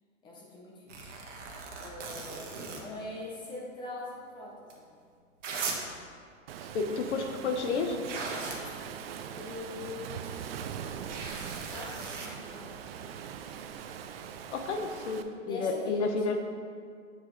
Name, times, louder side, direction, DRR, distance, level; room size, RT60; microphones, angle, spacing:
voice 1, 0.2-1.1 1.8-5.0 7.0-7.5 9.3-10.3 10.9-12.9 15.4-16.4, left 2 dB, 10° left, -3 dB, 0.6 m, -43 dB
sound 1, 0.9-2.8 4.7-4.8 5.4-5.9 7.6-7.7 8.0-8.6 11.1-12.3 14.6-14.7, right 4 dB, 65° right, 1.3 m, -38 dB
Waves surf, 6.5-15.2, right 8 dB, 50° right, 0.5 m, -41 dB
voice 2, 6.7-8.0 14.5-16.4, left 4 dB, 60° left, 5 dB, 1.0 m, -31 dB
7.7 x 4.9 x 3.8 m, 2.1 s
hypercardioid pair, 140°, 39 cm